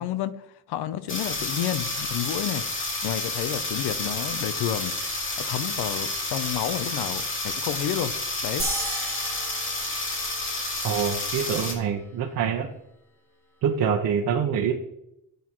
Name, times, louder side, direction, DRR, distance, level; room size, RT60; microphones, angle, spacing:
voice 1, 0.0-2.6 3.0-4.9 5.4-8.1 8.4-8.7, left 11 dB, 70° left, 0.8 m, -30 dB
sound 1, 1.1-11.7, left 2 dB, 30° left, 2.4 m, -30 dB
sound 2, 8.6-11.3, right 1 dB, 5° left, 2.6 m, -35 dB
voice 2, 10.8-12.7 13.6-14.7, right 7 dB, 60° right, 1.3 m, -25 dB
13.5 x 8.2 x 3.1 m
cardioid pair, 140°, 40 cm